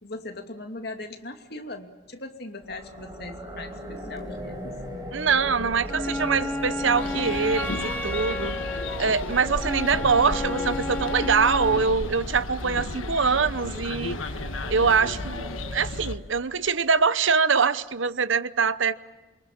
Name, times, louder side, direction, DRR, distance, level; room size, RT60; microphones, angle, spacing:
voice 1, 0.0-4.8, left 2 dB, 50° left, 4 dB, 2.6 m, -39 dB
sound 1, 2.6-16.7, equal, 20° right, 5.3 m, -39 dB
voice 2, 5.1-8.6 9.0-14.2 14.7-15.5 15.7-19.0, right 5 dB, 70° right, 15 dB, 0.9 m, -23 dB
Wind instrument woodwind instrument, 5.8-11.9, left 2 dB, 10° left, 1.5 m, -32 dB
sound 2, 7.0-16.1, left 2 dB, 85° left, 1.4 m, -34 dB
27.5 x 24.0 x 7.5 m, 1.2 s
head